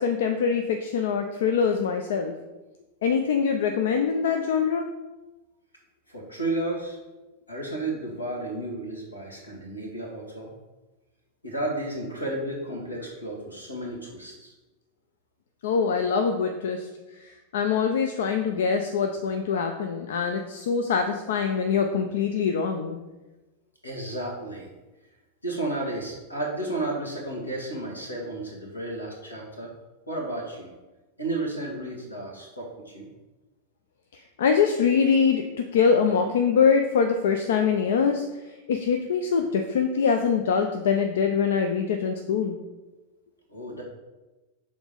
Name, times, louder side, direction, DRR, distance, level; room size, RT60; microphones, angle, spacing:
voice 1, 0.0-2.3 3.0-4.9 15.6-16.9 17.2-23.0 34.1-35.4 35.7-38.2 38.7-42.6, left 6 dB, 60° left, 6 dB, 0.5 m, -24 dB
voice 2, 6.1-7.0 7.5-10.5 11.4-14.5 23.8-24.7 25.4-29.7 30.1-30.7 31.2-33.1 43.5-43.8, right 2 dB, 80° left, -1 dB, 1.7 m, -32 dB
6.1 x 3.9 x 5.0 m, 1.1 s
figure-of-eight pair, 90°, 0 cm